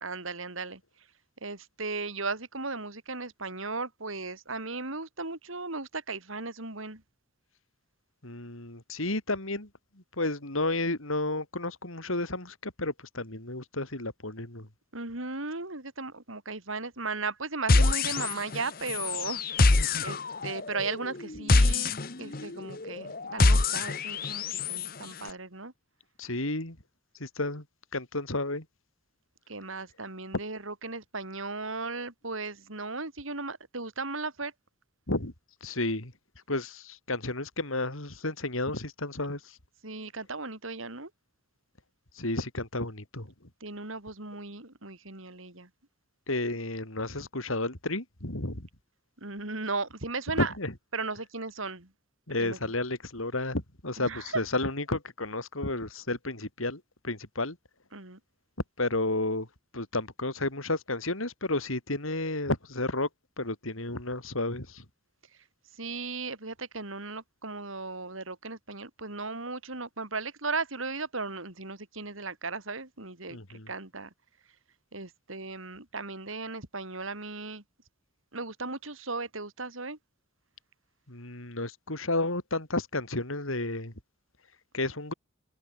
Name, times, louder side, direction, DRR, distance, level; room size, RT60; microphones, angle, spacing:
voice 1, 0.0-0.8 1.4-7.0 14.9-19.4 20.0-21.9 22.2-25.7 29.5-34.5 39.8-41.1 43.6-45.7 49.2-50.5 50.9-51.9 52.4-52.7 54.0-54.4 57.9-58.2 65.8-73.4 73.7-74.1 74.9-77.6 78.3-80.0, right 3 dB, 80° right, 4.0 m, -36 dB
voice 2, 8.2-9.7 10.2-14.7 19.8-20.1 25.2-25.3 26.2-26.8 27.2-27.6 27.9-28.6 35.1-35.3 35.6-36.1 36.5-39.6 42.2-43.3 46.3-48.7 50.4-50.7 52.3-57.6 58.8-59.5 59.7-63.1 63.4-64.8 73.3-73.7 81.1-83.9 84.7-85.1, left 2 dB, 85° left, 5.0 m, -32 dB
sound 1, 17.7-24.9, left 3 dB, 45° left, 1.0 m, -25 dB
head